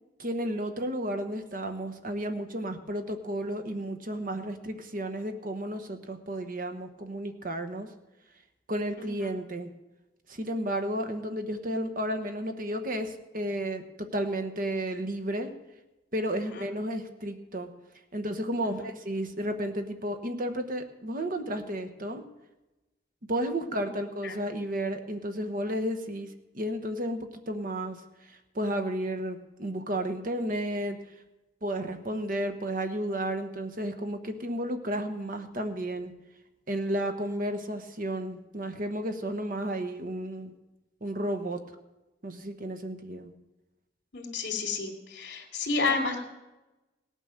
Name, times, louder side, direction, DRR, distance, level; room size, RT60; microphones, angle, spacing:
voice 1, 0.2-7.9 8.7-9.7 10.3-15.5 16.1-17.7 18.1-22.2 23.3-26.3 26.5-28.0 28.5-31.0 31.6-36.1 36.7-40.5 41.0-41.6 42.2-43.3, right 1 dB, 50° right, 7 dB, 1.2 m, -32 dB
voice 2, 9.0-9.4 11.0-11.1 16.3-16.6 18.6-18.9 23.6-23.9 24.2-24.4 44.1-46.2, left 4 dB, 65° left, 3 dB, 3.0 m, -32 dB
17.5 x 9.2 x 6.6 m, 1.0 s
head